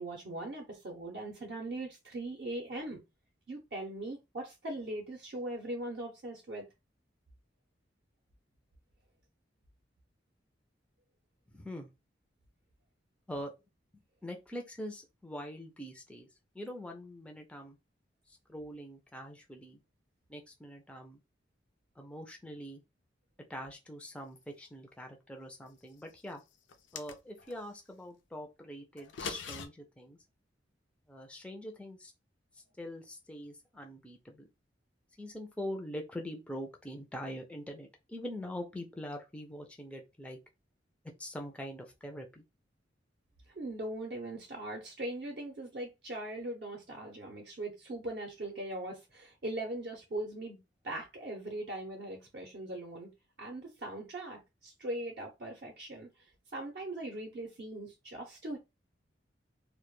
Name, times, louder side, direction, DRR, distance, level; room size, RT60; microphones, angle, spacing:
voice 1, 0.0-3.0 3.5-6.7 43.5-50.6 50.8-53.1 53.4-56.1 56.5-58.6, right 1 dB, 55° right, 0.5 m, -40 dB
voice 2, 11.5-11.9 13.3-13.5 14.2-16.3 16.5-17.8 18.3-19.8 20.3-21.2 22.0-22.8 23.5-26.4 26.9-30.2 31.1-32.1 32.5-34.5 35.2-40.4 41.2-42.4, equal, 5° left, 0.3 m, -43 dB
sound 1, 26.7-27.6 29.0-29.7, left 6 dB, 80° left, 0.4 m, -41 dB
2.1 x 2.1 x 3.0 m
head